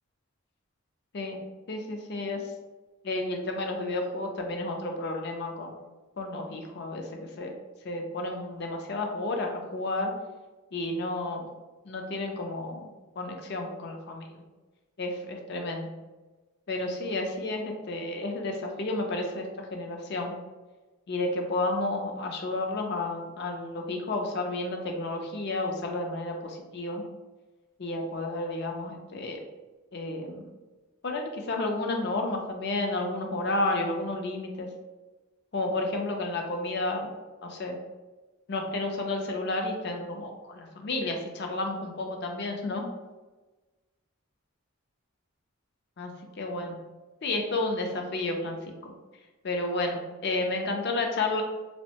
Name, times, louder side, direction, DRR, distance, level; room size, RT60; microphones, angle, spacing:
voice 1, 1.7-2.4 3.0-5.7 6.2-7.5 7.8-10.1 10.7-11.5 11.9-12.9 13.2-14.2 15.0-15.9 16.7-20.3 21.1-27.0 27.8-29.4 29.9-30.4 31.0-34.7 35.5-37.1 37.4-37.8 38.5-42.9 46.0-46.1 46.4-46.8 47.2-48.6 48.8-48.9 49.4-51.4, left 2 dB, 50° left, 3 dB, 0.4 m, -31 dB
3.4 x 2.1 x 2.8 m, 1.2 s
head